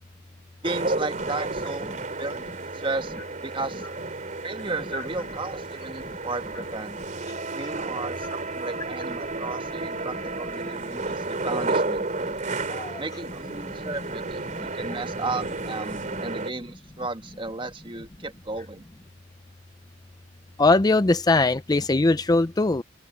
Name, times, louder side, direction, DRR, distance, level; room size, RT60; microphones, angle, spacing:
voice 1, 0.6-2.5 2.7-3.1 3.4-3.9 4.4-7.0 7.5-12.1 13.0-18.8, right 3 dB, 25° right, 1.4 m, -34 dB
sound 1, 0.6-16.5, right 3 dB, 40° right, 3.1 m, -32 dB
voice 2, 12.7-13.0 20.6-22.8, left 2 dB, 20° left, 0.5 m, -20 dB
open air
head